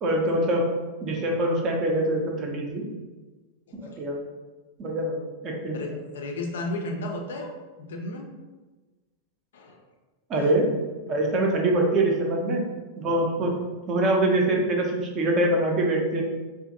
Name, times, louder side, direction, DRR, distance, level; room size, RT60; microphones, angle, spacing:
voice 1, 0.0-0.7 1.0-2.8 3.7-4.2 4.8-5.2 5.4-5.8 10.3-10.7 11.1-12.6 13.0-13.5 13.9-16.2, right 1 dB, 30° right, 0 dB, 0.5 m, -24 dB
voice 2, 3.7-4.0 5.7-7.5 7.8-8.3 9.5-9.8, left 2 dB, 60° left, 2 dB, 0.4 m, -34 dB
2.5 x 2.4 x 2.5 m, 1.3 s
figure-of-eight pair, 90°, 0 cm